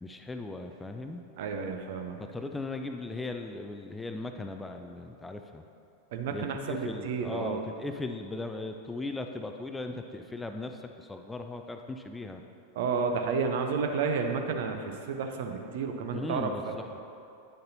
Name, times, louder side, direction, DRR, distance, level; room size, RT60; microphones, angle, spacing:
voice 1, 0.0-1.2 2.2-5.6 6.3-12.4 16.1-17.0, left 2 dB, 10° left, 5 dB, 0.4 m, -38 dB
voice 2, 1.4-2.2 6.1-7.6 12.8-16.7, right 5 dB, 50° right, 4 dB, 0.6 m, -31 dB
9.8 x 6.5 x 2.8 m, 2.7 s
figure-of-eight pair, 90°, 0 cm